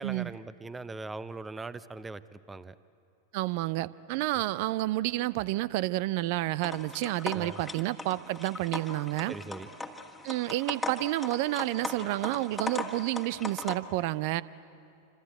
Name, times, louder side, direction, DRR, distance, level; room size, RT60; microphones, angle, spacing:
voice 1, 0.0-2.7 7.3-7.6 9.3-9.7, right 3 dB, 10° right, 16 dB, 0.8 m, -40 dB
voice 2, 3.3-9.4 10.2-14.4, right 17 dB, 50° right, 19 dB, 0.6 m, -30 dB
sound 1, 6.6-13.8, left 2 dB, 5° left, 1.8 m, -39 dB
28.0 x 26.5 x 8.1 m, 2.6 s
figure-of-eight pair, 90°, 0 cm